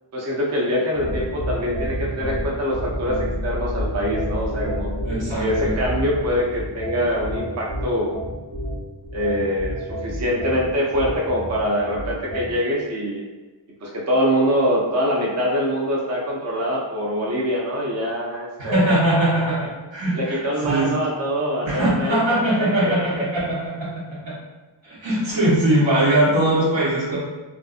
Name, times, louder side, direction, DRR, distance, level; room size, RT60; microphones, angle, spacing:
voice 1, 0.1-4.9 5.4-8.1 9.1-13.2 13.8-19.0 20.1-23.2, equal, 40° right, -3 dB, 0.5 m, -24 dB
sound 1, 0.9-12.5, equal, 60° right, 1.1 m, -29 dB
voice 2, 5.0-5.7 18.6-21.0 21.6-23.9 24.2-24.3 24.8-27.2, right 1 dB, 80° right, -6 dB, 1.0 m, -21 dB
2.5 x 2.4 x 2.3 m, 1.2 s
wide cardioid pair, 115°, 44 cm